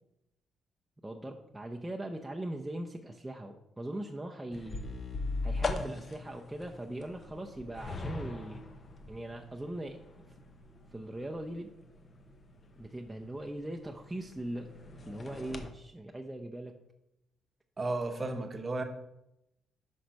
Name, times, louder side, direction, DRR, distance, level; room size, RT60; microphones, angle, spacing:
voice 1, 1.0-4.8 5.4-8.6 9.1-10.0 10.9-11.7 12.8-14.7 15.1-16.8, right 1 dB, 10° right, 1 dB, 0.6 m, -40 dB
sound 1, 4.5-15.7, left 3 dB, 40° left, 0.8 m, -41 dB
voice 2, 17.8-18.8, right 2 dB, 30° right, 6 dB, 0.9 m, -33 dB
5.9 x 5.3 x 5.1 m, 0.87 s
cardioid pair, 90°, 0 cm